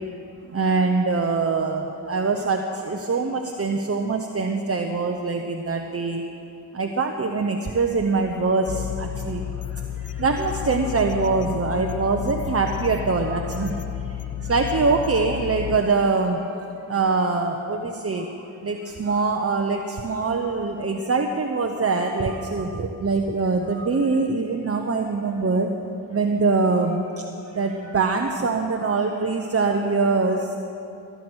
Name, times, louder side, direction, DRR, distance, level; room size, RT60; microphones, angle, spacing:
voice 1, 0.5-6.2 6.7-9.4 9.7-16.6 16.8-25.7 26.1-30.6, right 4 dB, 35° right, 3 dB, 1.0 m, -24 dB
sound 1, 8.7-15.8, left 10 dB, 40° left, 0.6 m, -32 dB
20.0 x 9.4 x 6.4 m, 2.9 s
cardioid pair, 70°, 38 cm